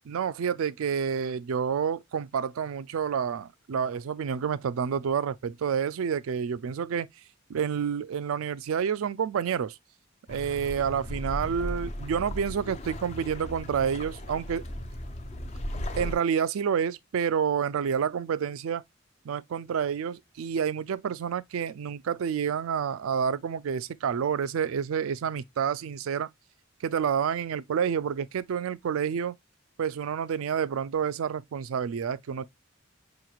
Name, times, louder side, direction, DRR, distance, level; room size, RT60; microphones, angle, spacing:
voice 1, 0.1-7.2 7.5-9.8 10.3-14.7 15.9-18.8 19.2-26.3 26.8-29.4 29.8-32.4, right 7 dB, 80° right, 0.4 m, -29 dB
sound 1, 10.3-16.2, equal, 30° left, 0.5 m, -36 dB
4.9 x 3.0 x 2.3 m
head